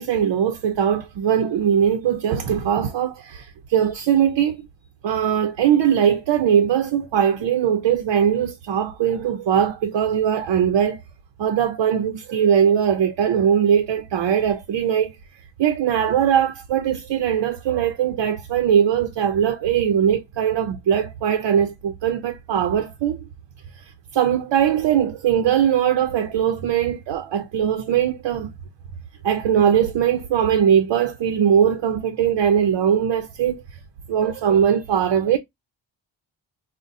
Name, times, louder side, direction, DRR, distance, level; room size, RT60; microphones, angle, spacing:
voice 1, 0.0-4.7 5.0-11.0 11.4-15.1 15.6-23.3 24.1-28.5 29.2-33.6 34.1-35.4, right 8 dB, 90° right, 0.6 m, -20 dB
5.3 x 2.1 x 2.5 m
wide cardioid pair, 150°, 42 cm